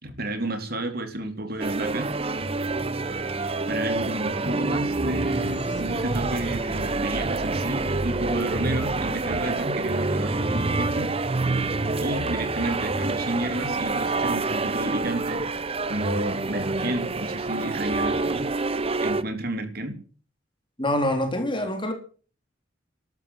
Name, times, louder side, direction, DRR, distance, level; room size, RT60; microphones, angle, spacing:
voice 1, 0.0-2.1 3.7-11.1 12.0-15.5 15.9-18.5 19.0-20.0, right 1 dB, 50° right, 3.4 m, -31 dB
sound 1, 1.6-19.2, right 3 dB, 30° right, 1.0 m, -27 dB
sound 2, 5.0-10.9, left 1 dB, 65° left, 2.4 m, -41 dB
voice 2, 20.8-21.9, left 1 dB, 25° left, 3.6 m, -25 dB
14.5 x 12.5 x 7.8 m
head